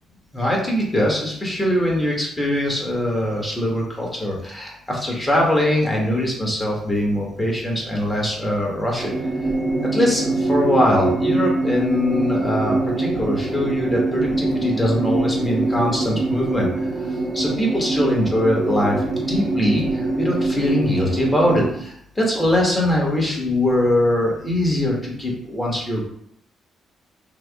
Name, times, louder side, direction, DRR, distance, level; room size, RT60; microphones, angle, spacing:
voice 1, 0.3-9.1 9.9-16.7 17.3-19.0 19.3-26.0, left 1 dB, 15° left, -3 dB, 1.2 m, -22 dB
sound 1, 9.0-21.7, right 2 dB, 45° right, 0.6 m, -23 dB
3.3 x 2.0 x 3.4 m, 0.70 s
cardioid pair, 90°, 0 cm